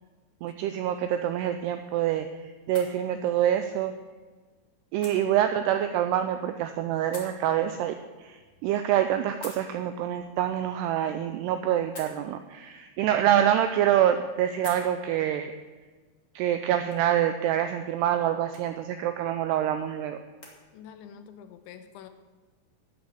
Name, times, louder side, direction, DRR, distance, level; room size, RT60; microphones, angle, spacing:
voice 1, 0.4-4.0 4.9-15.5 16.4-20.2, right 11 dB, 85° right, 8 dB, 2.3 m, -26 dB
sound 1, 1.1-20.6, left 2 dB, 45° left, 0.9 m, -53 dB
voice 2, 20.7-22.1, left 8 dB, 85° left, 9 dB, 3.1 m, -46 dB
12.5 x 6.2 x 8.6 m, 1.4 s
omnidirectional pair, 5.3 m